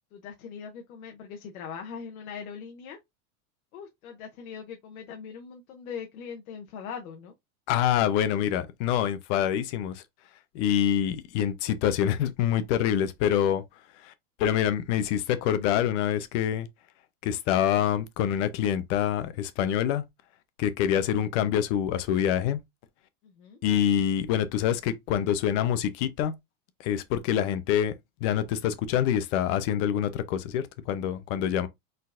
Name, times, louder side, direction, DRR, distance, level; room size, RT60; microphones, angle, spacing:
voice 1, 0.1-3.0 3.7-7.3 23.2-23.6, left 6 dB, 80° left, 1.0 m, -41 dB
voice 2, 7.7-10.0 10.5-13.6 14.0-14.1 14.4-16.7 17.2-20.0 20.6-22.6 23.6-26.3 26.8-27.9 28.2-31.7, left 10 dB, 60° left, 0.9 m, -26 dB
4.4 x 3.9 x 2.5 m
supercardioid pair, 140°, 42 cm